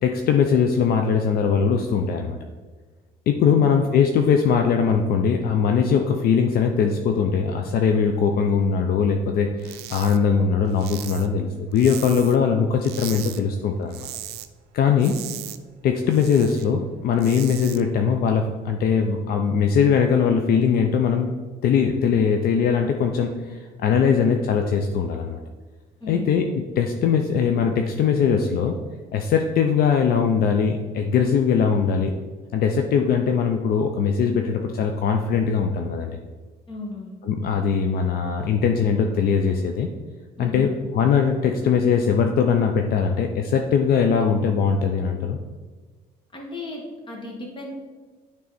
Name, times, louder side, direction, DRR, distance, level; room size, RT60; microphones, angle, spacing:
voice 1, 0.0-2.4 3.3-14.1 14.7-15.1 15.8-21.3 21.6-25.4 26.1-26.4 26.8-28.8 29.1-32.2 32.5-36.2 37.3-39.9 40.4-45.4, left 6 dB, 65° left, 4 dB, 0.6 m, -21 dB
sound 1, 9.6-10.2 10.5-12.5 12.8-13.4 13.7-14.5 14.8-16.6 17.0-17.8, right 12 dB, 75° right, 0.5 m, -38 dB
voice 2, 15.0-15.3 26.0-26.4 36.7-37.2 40.4-40.8 46.3-47.7, left 2 dB, 30° left, 0 dB, 1.7 m, -35 dB
9.3 x 3.5 x 4.2 m, 1.4 s
cardioid pair, 110°, 17 cm